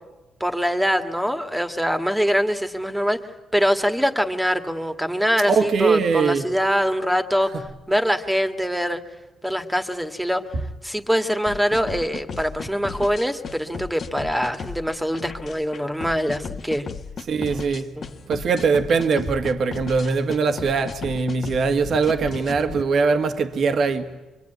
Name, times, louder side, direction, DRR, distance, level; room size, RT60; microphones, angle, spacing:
voice 1, 0.4-3.2 3.5-9.0 9.4-10.4 10.8-16.9 18.0-18.1, equal, 5° right, 2.1 m, -23 dB
voice 2, 5.5-6.4 17.3-18.0 18.3-24.2, right 5 dB, 60° right, 1.8 m, -21 dB
sound 1, 11.5-22.8, left 5 dB, 50° left, 1.5 m, -35 dB
26.0 x 24.0 x 9.4 m
cardioid pair, 90°, 0 cm